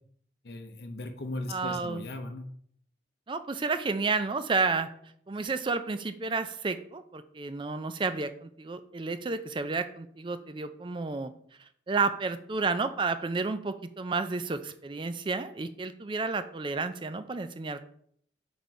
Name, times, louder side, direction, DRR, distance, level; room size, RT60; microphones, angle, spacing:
voice 1, 0.4-2.5, left 2 dB, 55° left, 6 dB, 0.7 m, -38 dB
voice 2, 1.5-2.1 3.3-4.9 5.3-11.3 11.9-17.8, right 4 dB, 25° right, 11 dB, 0.4 m, -31 dB
5.0 x 4.2 x 4.6 m, 0.65 s
head